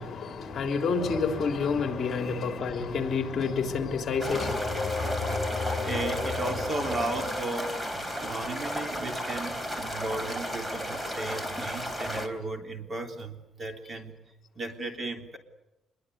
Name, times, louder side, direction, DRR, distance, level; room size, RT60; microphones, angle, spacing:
voice 1, 0.0-5.9, left 5 dB, 45° left, 3.6 m, -30 dB
sound 1, 1.0-3.4 4.0-7.3, left 3 dB, 20° left, 4.1 m, -35 dB
sound 2, 4.2-12.3, equal, 10° right, 3.4 m, -34 dB
voice 2, 5.8-14.2 14.6-15.4, right 2 dB, 30° right, 3.6 m, -35 dB
26.5 x 22.5 x 8.3 m
cardioid pair, 135°, 0 cm